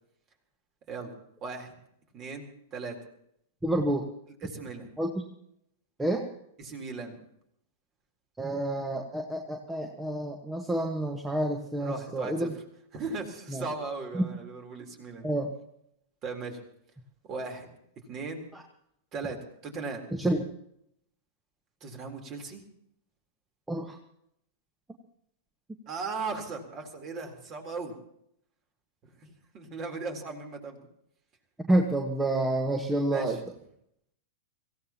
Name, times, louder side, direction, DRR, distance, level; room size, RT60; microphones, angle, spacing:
voice 1, 1.4-1.7 2.1-3.0 4.4-4.9 6.6-7.2 11.8-12.5 12.9-15.3 16.2-16.6 17.3-17.7 18.1-18.4 19.1-19.4 19.6-20.0 21.8-22.6 25.9-27.9 29.2-30.9 33.1-33.4, right 4 dB, 35° right, 4 dB, 3.8 m, -37 dB
voice 2, 3.6-4.0 5.0-5.2 6.0-6.2 8.4-12.5 13.5-13.6 14.1-14.3 15.2-15.5 20.1-20.4 23.7-23.9 31.7-33.4, right 1 dB, 10° right, 3 dB, 1.5 m, -28 dB
25.5 x 16.0 x 3.0 m, 0.73 s
figure-of-eight pair, 95°, 0 cm